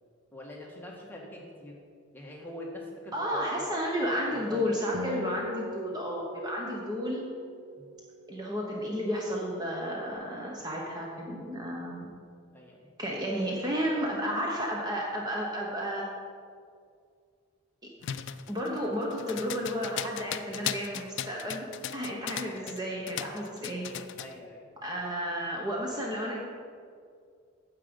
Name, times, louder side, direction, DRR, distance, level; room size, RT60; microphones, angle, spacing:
voice 1, 0.3-1.8 2.1-3.6 4.3-4.8 7.8-7.9 12.5-12.9 22.4-22.8 23.1-23.3 23.8-24.7, left 1 dB, 10° left, -2 dB, 1.4 m, -45 dB
voice 2, 3.1-7.3 8.3-12.1 13.0-16.1 18.5-21.7 21.9-23.9 24.8-26.4, equal, 20° right, -2 dB, 0.9 m, -32 dB
Acoustic guitar, 4.9-8.7, left 1 dB, 85° right, 0.8 m, -42 dB
sound 1, 18.0-22.8 23.1-24.3, left 10 dB, 55° left, 0.3 m, -37 dB
9.5 x 7.4 x 5.2 m, 2.2 s
head